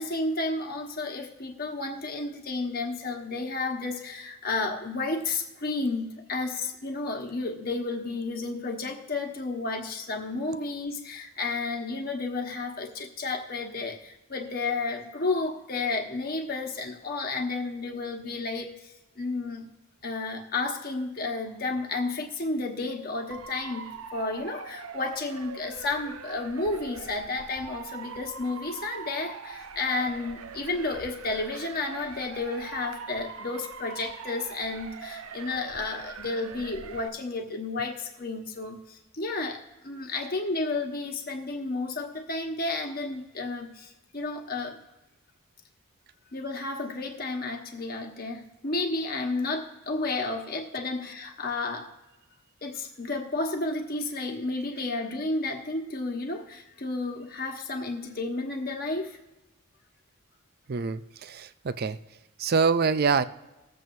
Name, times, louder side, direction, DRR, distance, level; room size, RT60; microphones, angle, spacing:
voice 1, 0.0-19.7 20.0-44.8 46.3-51.9 52.6-59.2, left 3 dB, 45° left, 2 dB, 1.3 m, -32 dB
Motor vehicle (road) / Siren, 23.3-37.1, right 5 dB, 85° right, 0.7 m, -42 dB
voice 2, 60.7-62.0 62.4-63.2, right 5 dB, 45° right, 13 dB, 0.4 m, -25 dB
20.0 x 7.6 x 2.7 m, 1.0 s
head